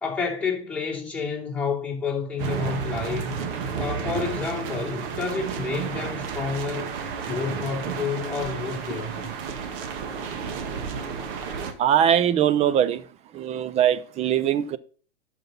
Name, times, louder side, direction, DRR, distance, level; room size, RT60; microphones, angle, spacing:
voice 1, 0.0-3.3 3.8-6.9 7.3-9.2, left 5 dB, 5° left, 2.9 m, -29 dB
sound 1, 2.4-11.7, right 6 dB, 50° right, 1.7 m, -32 dB
voice 2, 11.8-13.0 13.3-14.8, right 10 dB, 20° right, 0.4 m, -21 dB
12.0 x 5.6 x 4.1 m
hypercardioid pair, 110°, 34 cm